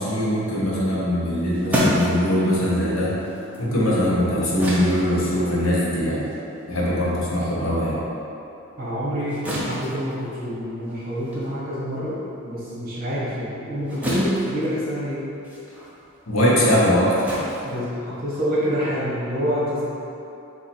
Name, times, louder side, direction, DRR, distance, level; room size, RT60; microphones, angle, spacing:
voice 1, 0.0-3.2 3.6-6.2 6.7-8.0 16.3-17.1, equal, 70° left, -6 dB, 1.0 m, -21 dB
sound 1, 1.2-8.0 8.3-18.5, equal, 5° right, 0.7 m, -31 dB
voice 2, 3.6-4.0 8.8-12.2 12.4-15.2 16.7-16.8 17.6-19.9, equal, 45° right, -8 dB, 1.1 m, -27 dB
4.1 x 2.9 x 4.3 m, 2.9 s
head